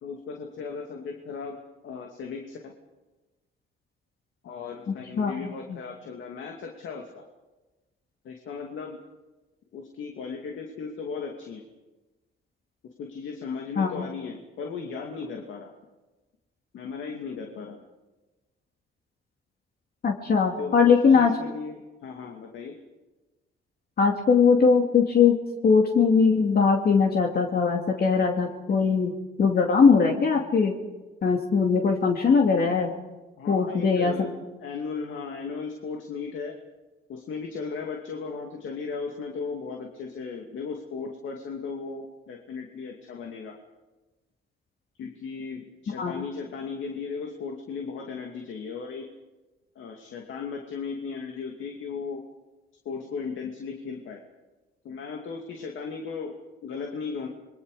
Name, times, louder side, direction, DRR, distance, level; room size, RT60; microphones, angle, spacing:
voice 1, 0.0-1.6 1.8-2.7 4.4-7.2 8.2-9.0 9.7-11.6 13.0-15.7 16.7-17.8 20.6-22.8 33.4-36.5 37.1-43.5 45.0-49.1 49.7-52.2 52.8-54.2 54.8-56.3 56.6-57.3, left 5 dB, 75° left, 2 dB, 2.6 m, -36 dB
voice 2, 5.2-5.5 13.8-14.0 20.0-21.3 24.0-25.4 25.6-29.1 29.4-30.7 31.2-32.9 33.5-34.3 46.0-46.2, left 5 dB, 50° left, 2 dB, 2.5 m, -21 dB
29.0 x 22.0 x 5.1 m, 1.1 s
cardioid pair, 90°, 20 cm